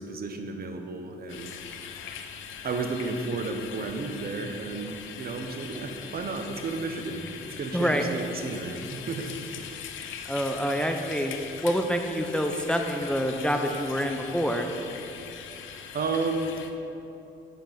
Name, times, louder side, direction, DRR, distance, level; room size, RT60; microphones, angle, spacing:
voice 1, 0.0-1.5 2.6-9.3 15.9-16.6, right 3 dB, 50° right, 5 dB, 1.0 m, -32 dB
sound 1, 1.3-16.7, left 7 dB, 80° left, 0.7 m, -41 dB
voice 2, 7.7-8.0 10.0-14.7, equal, 5° left, 4 dB, 0.7 m, -27 dB
8.7 x 7.8 x 5.2 m, 2.8 s
cardioid pair, 90°, 20 cm